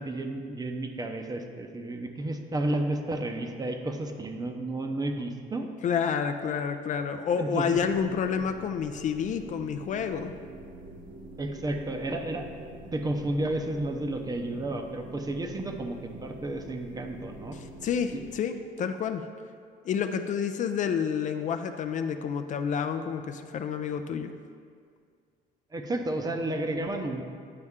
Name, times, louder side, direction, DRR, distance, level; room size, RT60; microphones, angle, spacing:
voice 1, 0.0-5.7 7.4-7.8 11.4-17.6 18.1-18.2 25.7-27.2, right 1 dB, 20° right, 5 dB, 0.7 m, -32 dB
voice 2, 5.8-10.4 17.5-19.2 19.8-24.3, left 7 dB, 50° left, 8 dB, 0.4 m, -29 dB
sound 1, 7.7-18.3, right 2 dB, 50° right, 1.0 m, -46 dB
9.6 x 5.3 x 3.6 m, 2.2 s
cardioid pair, 110°, 17 cm